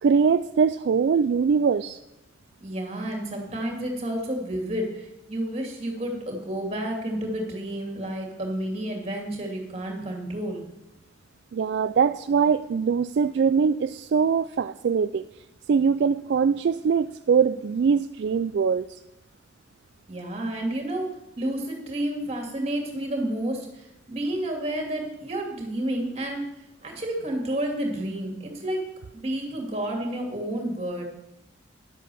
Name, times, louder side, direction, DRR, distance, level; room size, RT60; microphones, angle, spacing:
voice 1, 0.0-2.0 11.5-15.2 15.7-19.0, right 6 dB, 60° right, 12 dB, 0.3 m, -22 dB
voice 2, 2.6-10.7 20.1-21.1 21.4-26.4 26.8-28.8 29.1-31.0, right 1 dB, 35° right, 1 dB, 2.5 m, -30 dB
11.0 x 7.5 x 6.9 m, 0.88 s
head